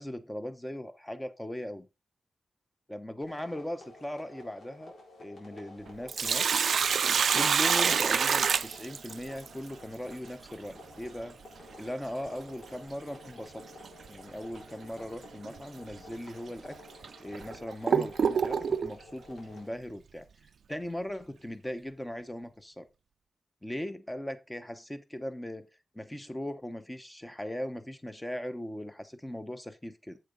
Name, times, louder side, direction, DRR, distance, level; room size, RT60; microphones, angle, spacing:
voice 1, 0.0-1.9 2.9-4.9 5.2-6.5 7.3-11.4 11.8-13.6 14.1-16.8 17.2-20.3 20.7-22.9 23.6-25.7 25.9-30.2, left 1 dB, 10° left, 0.8 m, -39 dB
sound 1, 3.2-19.7, left 2 dB, 80° left, 4.2 m, -52 dB
Sink (filling or washing), 5.9-9.5 11.9-12.0 13.8-14.1 14.6-14.7 15.4-15.6 16.3-16.4 17.0-18.9, right 6 dB, 65° right, 0.3 m, -26 dB
8.0 x 6.8 x 3.9 m
wide cardioid pair, 175°, 0 cm